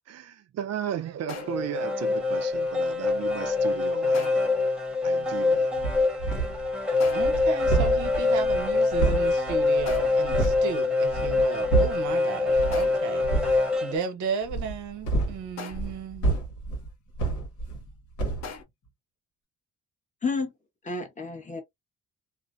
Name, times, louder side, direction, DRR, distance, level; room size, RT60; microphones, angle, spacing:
voice 1, 0.1-4.4 5.0-5.7, right 10 dB, 55° right, 0.5 m, -35 dB
sound 1, 1.3-1.8 4.1-4.7 7.0-7.5 9.9-10.4 12.7-13.2 15.6-16.1 18.4-18.6, left 5 dB, 60° left, 0.8 m, -41 dB
sound 2, 1.4-14.0, left 3 dB, 5° right, 0.9 m, -25 dB
sound 3, 5.8-6.7 7.0-10.7 11.1-12.1 12.5-12.9 13.2-13.6 14.4-17.9 18.2-18.5, right 3 dB, 85° left, 1.1 m, -29 dB
voice 2, 7.0-16.4, right 6 dB, 75° right, 0.9 m, -34 dB
voice 3, 20.2-20.5 20.8-21.6, left 4 dB, 25° left, 1.0 m, -30 dB
2.5 x 2.1 x 2.4 m
cardioid pair, 90°, 30 cm